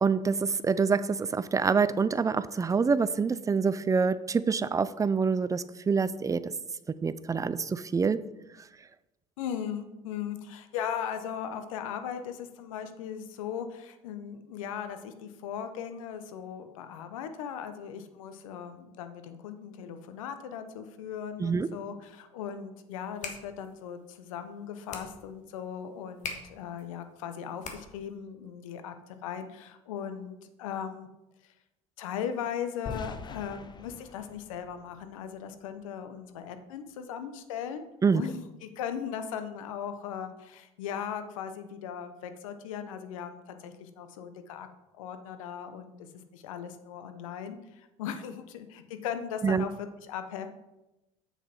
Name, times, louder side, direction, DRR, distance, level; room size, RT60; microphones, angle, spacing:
voice 1, 0.0-6.4 7.0-8.2 21.4-21.7 38.0-38.2 49.4-49.7, right 5 dB, 20° right, 15 dB, 0.4 m, -26 dB
voice 2, 9.4-31.1 32.0-37.8 38.1-44.7 44.9-46.1 46.3-50.5, left 8 dB, 85° left, 9 dB, 0.8 m, -38 dB
sound 1, 22.9-28.2, left 4 dB, 45° left, 1.5 m, -44 dB
sound 2, 32.9-35.8, left 5 dB, 25° left, 0.7 m, -44 dB
7.5 x 6.8 x 4.3 m, 0.95 s
hypercardioid pair, 80°, 17 cm